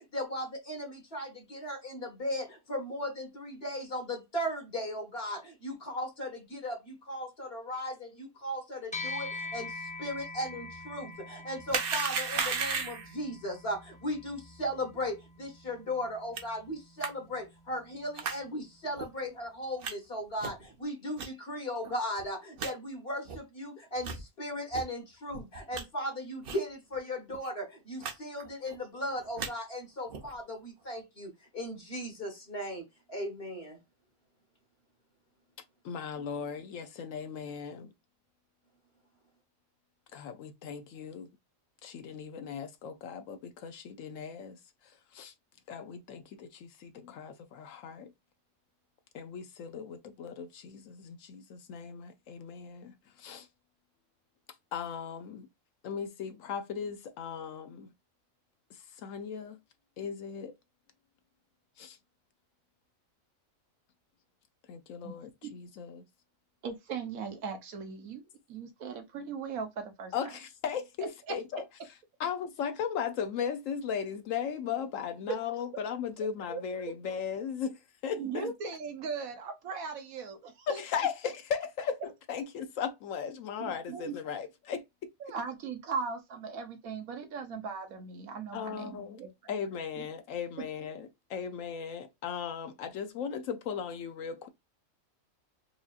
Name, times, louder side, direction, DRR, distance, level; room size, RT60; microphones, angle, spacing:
voice 1, 0.0-33.8, equal, 50° left, 1.6 m, -37 dB
sound 1, 8.9-18.5, left 3 dB, 10° left, 0.4 m, -45 dB
sound 2, 11.7-13.1 16.4-16.5 17.0-17.1 18.2-18.4 19.0-19.1 19.8-19.9 20.4-20.7 21.2-21.3 21.8-21.9 22.2-22.3 22.6-22.7 23.3-23.4 24.0-24.2 24.7-24.8 25.3-25.8 26.4-26.7 26.9-27.0 27.3-27.5 28.0-28.1 28.4-28.8 29.2-29.5 30.1-30.3, right 5 dB, 55° right, 0.7 m, -34 dB
voice 2, 35.8-37.9 40.1-41.3 41.8-45.3 45.7-48.1 49.1-53.5 54.7-55.5 55.8-57.9 58.7-59.6 60.0-60.5 61.8-62.0 64.7-66.0 70.1-71.6 72.2-78.7 80.7-84.8 88.5-89.2 89.5-94.5, left 7 dB, 75° left, 0.9 m, -37 dB
voice 3, 66.6-68.2 68.5-70.1 76.5-76.6 78.1-80.8 83.6-84.2 85.2-89.5 90.0-90.1, right 5 dB, 85° right, 1.3 m, -38 dB
4.6 x 2.7 x 2.4 m
omnidirectional pair, 1.4 m